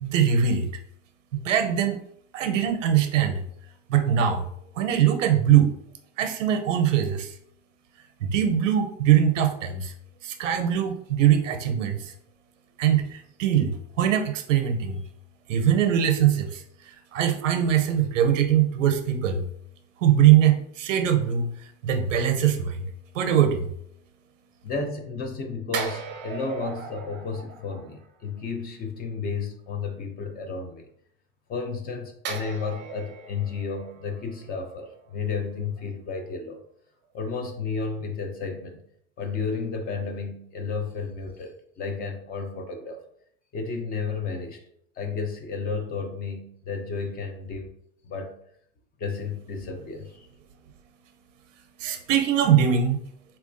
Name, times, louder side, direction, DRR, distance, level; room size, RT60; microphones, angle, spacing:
voice 1, 0.0-0.7 1.3-2.0 2.3-3.4 3.9-4.5 4.8-5.7 6.2-7.3 8.2-9.9 10.2-12.1 12.8-15.0 15.5-16.6 17.1-19.4 20.0-21.5 21.8-22.9 23.1-23.7 51.8-53.0, right 9 dB, 85° right, 6 dB, 0.6 m, -22 dB
voice 2, 24.6-30.9 31.5-36.6 37.1-38.8 39.2-43.0 43.5-44.6 45.0-47.7 48.1-48.4 49.0-50.3, left 4 dB, 25° left, 5 dB, 0.5 m, -32 dB
sound 1, 25.7-28.4 32.2-35.5 35.8-35.9, right 6 dB, 30° right, 0.6 m, -38 dB
4.0 x 2.4 x 2.6 m, 0.68 s
hypercardioid pair, 115°, 37 cm